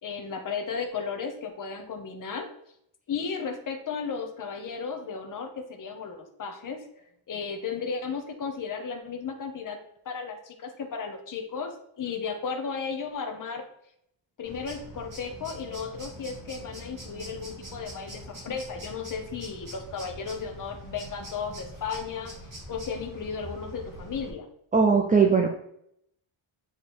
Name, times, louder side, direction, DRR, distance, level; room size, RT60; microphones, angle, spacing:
voice 1, 0.0-2.5 3.1-13.7 14.4-22.3 22.7-24.5, left 5 dB, 40° left, 4 dB, 0.9 m, -35 dB
sound 1, 14.4-24.3, equal, 40° right, 2.2 m, -44 dB
voice 2, 24.7-25.5, right 5 dB, 15° right, 2 dB, 0.5 m, -19 dB
8.2 x 3.1 x 4.2 m, 0.73 s
wide cardioid pair, 145°, 49 cm